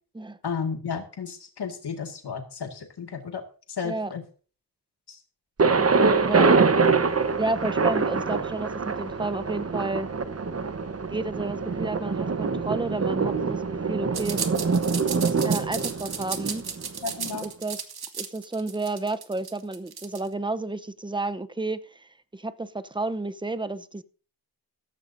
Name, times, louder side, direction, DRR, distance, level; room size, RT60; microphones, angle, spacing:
voice 1, 0.4-3.4 3.7-4.2 5.1-5.2 17.0-17.5, left 6 dB, 70° left, 2.1 m, -33 dB
voice 2, 5.6-6.5 7.4-10.1 11.1-14.4 15.3-16.6 17.4-17.8 18.2-24.0, right 2 dB, 10° right, 0.8 m, -31 dB
Thunder, 5.6-17.4, right 4 dB, 35° right, 1.1 m, -24 dB
sound 1, 14.1-20.3, right 6 dB, 60° right, 2.0 m, -34 dB
16.0 x 14.5 x 2.7 m
wide cardioid pair, 125°, 41 cm